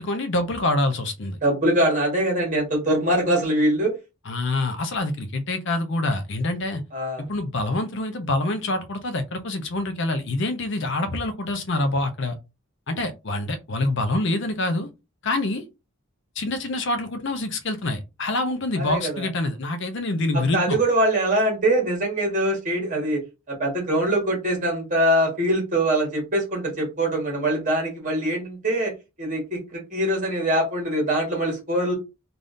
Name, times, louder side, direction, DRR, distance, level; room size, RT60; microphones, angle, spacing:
voice 1, 0.0-1.4 4.3-6.8 7.3-12.3 12.9-14.9 15.2-15.6 16.4-20.8, left 2 dB, 55° left, 0.6 m, -26 dB
voice 2, 1.4-3.9 6.9-7.2 18.8-19.3 20.3-23.2 23.5-28.9 29.2-31.9, right 1 dB, 35° right, 1.5 m, -23 dB
3.5 x 2.5 x 2.6 m
head